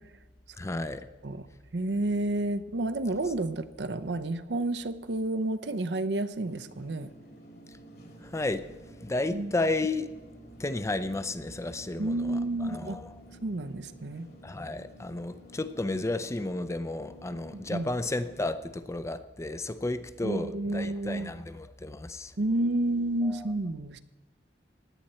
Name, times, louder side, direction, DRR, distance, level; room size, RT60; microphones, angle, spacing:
voice 1, 0.6-1.1 8.2-8.7 9.0-10.1 10.6-13.2 14.4-22.3 23.2-23.5, left 2 dB, 15° left, 12 dB, 0.5 m, -32 dB
voice 2, 1.7-7.1 9.3-9.5 12.0-13.0 13.4-14.3 17.5-17.9 20.2-21.3 22.4-24.0, right 2 dB, 70° right, 10 dB, 0.7 m, -30 dB
sound 1, 6.4-18.5, right 1 dB, 60° left, 2.7 m, -51 dB
16.0 x 10.5 x 4.3 m, 1.2 s
head